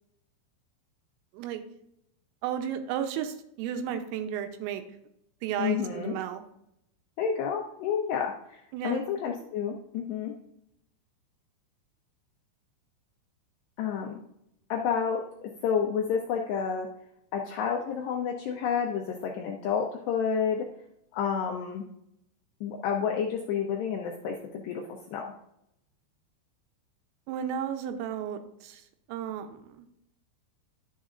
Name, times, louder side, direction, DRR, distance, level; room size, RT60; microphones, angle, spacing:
voice 1, 2.4-4.8 5.4-6.4 8.7-9.0 27.3-28.8 29.1-29.9, right 9 dB, 85° right, 8 dB, 3.5 m, -33 dB
voice 2, 5.6-6.2 7.2-10.3 13.8-14.2 14.7-16.9 17.3-20.7 21.1-21.8 22.6-25.3, left 7 dB, 85° left, 1 dB, 2.4 m, -30 dB
11.5 x 7.2 x 2.5 m, 0.78 s
omnidirectional pair, 5.8 m